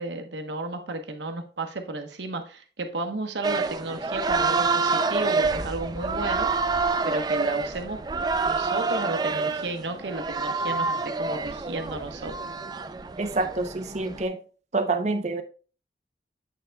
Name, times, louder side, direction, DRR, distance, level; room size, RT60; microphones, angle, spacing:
voice 1, 0.0-6.5 7.0-8.0 8.4-12.4, right 2 dB, 85° right, 1.0 m, -33 dB
sound 1, 3.4-14.2, right 4 dB, 25° right, 0.3 m, -27 dB
sound 2, 5.4-8.4, equal, 5° right, 2.1 m, -42 dB
voice 2, 13.2-14.4 14.7-15.4, right 3 dB, 40° right, 0.7 m, -27 dB
8.1 x 6.5 x 2.3 m
head